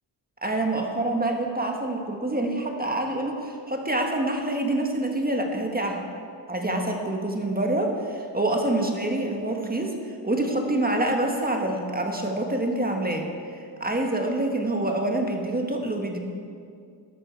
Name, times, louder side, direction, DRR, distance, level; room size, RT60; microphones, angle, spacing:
voice 1, 0.4-6.0 6.5-9.9 10.2-13.3 13.5-16.2, right 1 dB, 20° right, 2 dB, 1.4 m, -26 dB
13.0 x 12.0 x 4.6 m, 2.3 s
wide cardioid pair, 95°, 46 cm